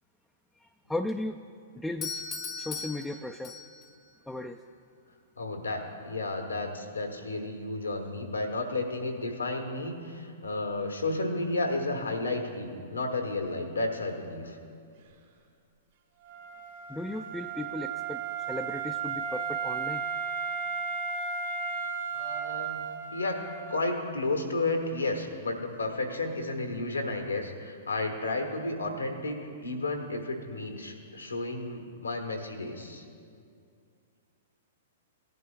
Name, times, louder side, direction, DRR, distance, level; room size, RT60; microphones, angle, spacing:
voice 1, 0.6-1.5 1.7-2.2 2.6-3.6 4.3-4.6 16.9-20.0, left 2 dB, 5° left, 4 dB, 0.3 m, -36 dB
Doorbell, 2.0-4.0, left 5 dB, 25° left, 0.8 m, -38 dB
voice 2, 5.4-14.6 22.1-22.8 23.1-23.4 23.7-33.0, left 2 dB, 90° left, 4 dB, 1.3 m, -32 dB
Wind instrument woodwind instrument, 16.2-24.0, right 6 dB, 65° right, 2.3 m, -34 dB
17.0 x 11.0 x 2.3 m, 2.3 s
figure-of-eight pair, 110°, 0 cm